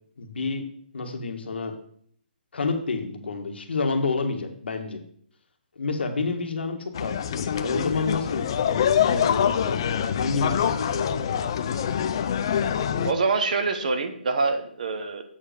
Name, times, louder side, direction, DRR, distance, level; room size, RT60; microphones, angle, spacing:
voice 1, 0.2-0.7 0.9-1.7 2.5-5.0 5.7-9.8 10.1-11.3, left 4 dB, 80° left, 5 dB, 1.6 m, -29 dB
sound 1, 6.9-13.1, left 8 dB, 25° left, 0.3 m, -25 dB
voice 2, 13.0-15.2, right 4 dB, 50° right, 8 dB, 1.0 m, -25 dB
8.2 x 5.2 x 5.1 m, 0.63 s
hypercardioid pair, 175°, 6 cm